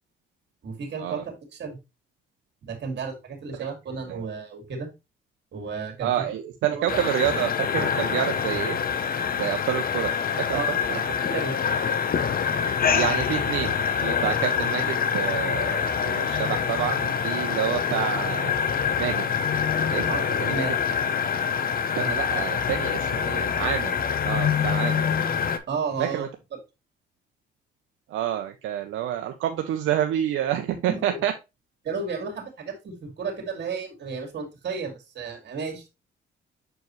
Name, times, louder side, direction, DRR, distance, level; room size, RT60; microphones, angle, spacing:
voice 1, 0.6-1.8 2.6-4.9 5.5-6.1 6.7-6.9 10.5-11.6 20.1-20.8 25.7-26.2 30.7-31.2 31.8-35.9, right 5 dB, 60° right, 2 dB, 2.4 m, -33 dB
voice 2, 6.0-8.8 9.4-10.1 10.5-11.0 12.9-13.7 14.0-18.6 19.0-19.3 19.9-20.1 20.4-20.8 22.0-23.9 24.2-25.1 26.0-26.3 28.1-31.3, right 11 dB, 80° right, 5 dB, 0.7 m, -28 dB
sound 1, 6.9-25.6, left 7 dB, 50° left, 0.8 m, -25 dB
6.7 x 4.6 x 3.1 m, 0.24 s
cardioid pair, 90°, 20 cm